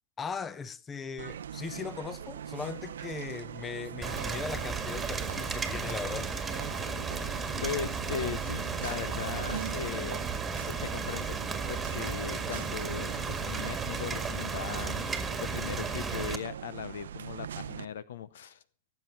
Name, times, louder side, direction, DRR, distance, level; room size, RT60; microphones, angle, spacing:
voice 1, 0.2-6.3, left 6 dB, 20° left, 0.9 m, -38 dB
sound 1, 1.2-17.8, right 9 dB, 70° right, 0.6 m, -42 dB
Rain, 4.0-16.4, right 5 dB, 10° right, 1.8 m, -34 dB
voice 2, 7.2-10.3 10.6-11.4 11.7-15.1 15.4-18.6, left 8 dB, 65° left, 0.7 m, -38 dB
18.0 x 8.0 x 5.9 m
figure-of-eight pair, 100°, 0 cm